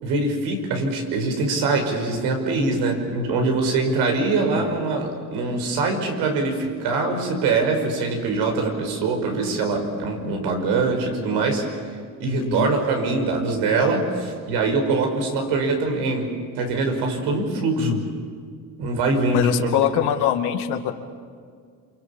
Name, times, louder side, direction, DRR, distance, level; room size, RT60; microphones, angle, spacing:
voice 1, 0.0-11.7 12.2-18.0 18.8-19.5 19.9-20.0, right 3 dB, 70° right, 4 dB, 5.8 m, -23 dB
voice 2, 12.4-12.7 17.8-18.0 19.3-20.9, left 11 dB, 70° left, 6 dB, 2.2 m, -23 dB
27.5 x 26.0 x 7.3 m, 2.1 s
supercardioid pair, 110°, 41 cm